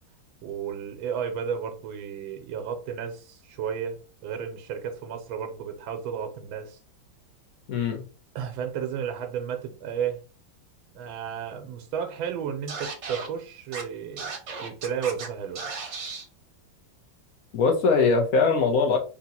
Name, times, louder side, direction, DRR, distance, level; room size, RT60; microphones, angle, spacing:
voice 1, 0.4-6.8 8.3-10.2 10.9-14.3 14.6-15.6, right 7 dB, 90° right, 5 dB, 1.5 m, -33 dB
voice 2, 7.7-8.0 17.5-19.0, left 4 dB, 60° left, 3 dB, 1.0 m, -21 dB
Scratching (performance technique), 12.7-13.3 13.7-13.8 14.2-15.3 15.6-16.2, right 4 dB, 50° right, 1.0 m, -35 dB
3.6 x 2.8 x 4.1 m, 0.37 s
omnidirectional pair, 2.2 m